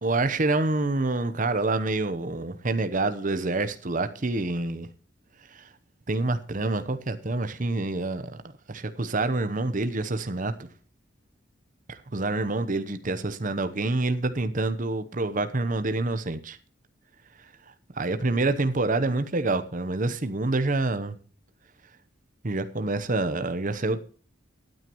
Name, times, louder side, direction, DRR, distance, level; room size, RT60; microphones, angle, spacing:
voice 1, 0.0-4.9 5.5-5.7 6.1-8.3 8.7-10.7 11.9-16.6 17.9-21.2 22.4-24.0, right 2 dB, 40° right, 0.9 m, -27 dB
18.0 x 9.3 x 3.0 m
head